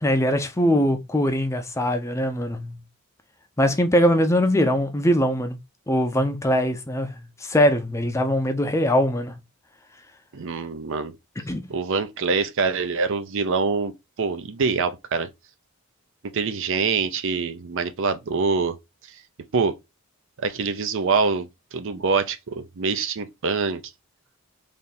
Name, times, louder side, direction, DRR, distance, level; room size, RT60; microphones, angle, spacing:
voice 1, 0.0-2.8 3.6-5.6 5.9-9.4 11.4-11.7, equal, 15° left, 0.5 m, -22 dB
voice 2, 10.3-11.1 11.7-13.9 14.2-15.3 16.3-18.8 19.5-19.8 20.4-23.8, right 4 dB, 60° right, 0.5 m, -25 dB
3.4 x 2.7 x 4.0 m
head